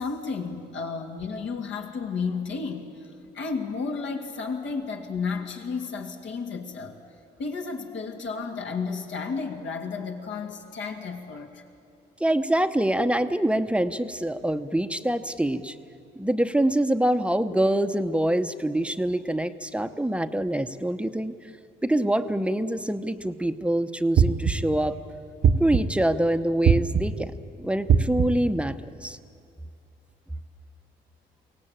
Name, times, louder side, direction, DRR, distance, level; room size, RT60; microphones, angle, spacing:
voice 1, 0.0-6.9 7.4-11.6, left 4 dB, 70° left, 3 dB, 2.5 m, -32 dB
voice 2, 12.2-15.8 16.2-21.4 21.8-25.0 25.6-27.3 27.6-29.2, right 1 dB, 5° right, 9 dB, 0.9 m, -25 dB
sound 1, 24.2-24.8 25.4-26.1 26.7-27.3 27.9-28.5, right 7 dB, 60° right, 1.1 m, -21 dB
23.0 x 17.5 x 9.0 m, 2.5 s
cardioid pair, 90°, 20 cm